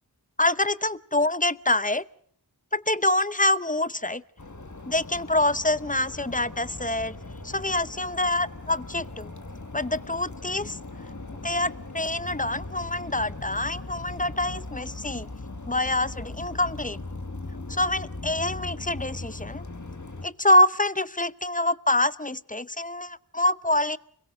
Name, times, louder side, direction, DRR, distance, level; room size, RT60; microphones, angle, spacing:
voice 1, 0.4-2.0 2.7-4.2 4.9-7.1 7.4-9.3 9.7-10.8 11.4-15.3 15.7-17.0 17.7-19.6 20.2-24.0, left 1 dB, 20° left, 16 dB, 0.8 m, -25 dB
sound 1, 4.4-20.3, left 2 dB, 50° left, 1.7 m, -39 dB
29.5 x 22.0 x 4.9 m, 0.64 s
wide cardioid pair, 45°, 39 cm